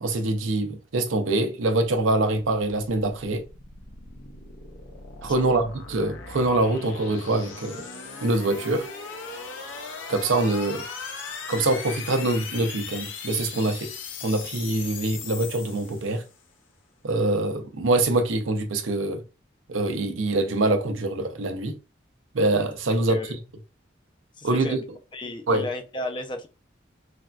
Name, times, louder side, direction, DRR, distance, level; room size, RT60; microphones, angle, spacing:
voice 1, 0.0-3.4 5.2-7.8 8.2-8.9 10.1-10.8 11.5-13.9 14.2-16.2 17.0-19.2 19.7-21.8 22.3-23.4 24.4-24.8 25.5-25.7, right 2 dB, 90° right, 0.6 m, -24 dB
sound 1, 3.3-16.4, left 5 dB, 80° left, 0.6 m, -39 dB
voice 2, 5.3-5.6 23.1-23.4 24.4-24.8 25.1-26.5, left 1 dB, 25° left, 0.4 m, -34 dB
3.3 x 2.5 x 2.2 m
head